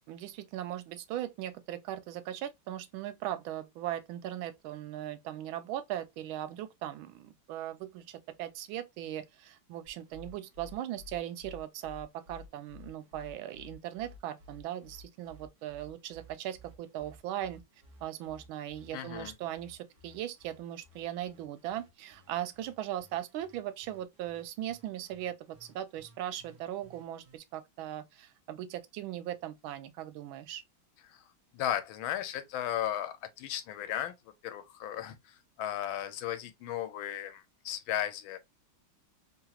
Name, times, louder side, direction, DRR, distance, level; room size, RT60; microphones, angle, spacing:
voice 1, 0.1-17.6 18.0-30.6, right 12 dB, 90° right, 1.4 m, -39 dB
sound 1, 9.8-27.4, left 2 dB, 50° right, 1.0 m, -55 dB
voice 2, 18.9-19.3 31.0-31.3 31.5-34.1 34.4-38.4, left 11 dB, 85° left, 1.4 m, -35 dB
3.7 x 2.3 x 2.8 m
omnidirectional pair, 2.2 m